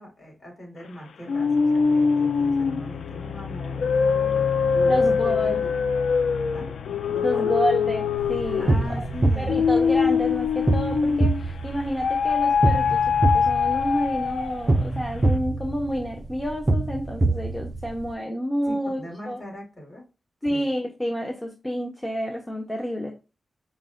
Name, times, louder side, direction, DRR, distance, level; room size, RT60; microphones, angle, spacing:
voice 1, 0.0-5.7 6.5-7.5 8.6-9.7 18.6-20.0 20.4-20.7, equal, 35° left, -1 dB, 2.5 m, -40 dB
sound 1, 1.3-11.5 12.0-14.8, left 5 dB, 90° left, 0.3 m, -23 dB
voice 2, 4.9-5.6 7.2-9.1 9.4-13.0 13.3-19.0 19.3-19.4 20.4-23.1, equal, 10° left, 1 dB, 0.6 m, -29 dB
sound 2, 8.2-18.1, right 2 dB, 25° right, 0.3 m, -25 dB
5.2 x 2.1 x 3.7 m, 0.30 s
wide cardioid pair, 140°, 0 cm